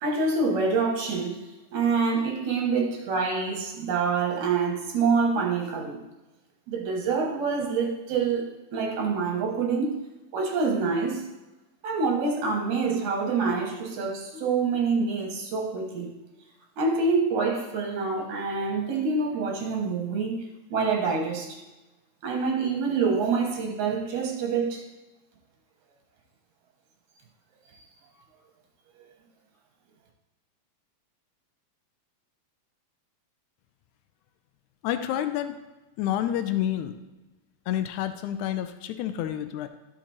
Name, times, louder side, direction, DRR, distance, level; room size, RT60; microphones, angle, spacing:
voice 1, 0.0-1.4 1.7-6.0 6.7-10.0 10.3-11.2 11.8-16.1 16.8-21.6 22.2-24.8, right 4 dB, 90° right, 2.7 m, -26 dB
voice 2, 34.8-35.6 36.0-36.9 37.7-39.7, left 11 dB, 90° left, 2.0 m, -29 dB
12.5 x 5.9 x 2.9 m
omnidirectional pair, 3.4 m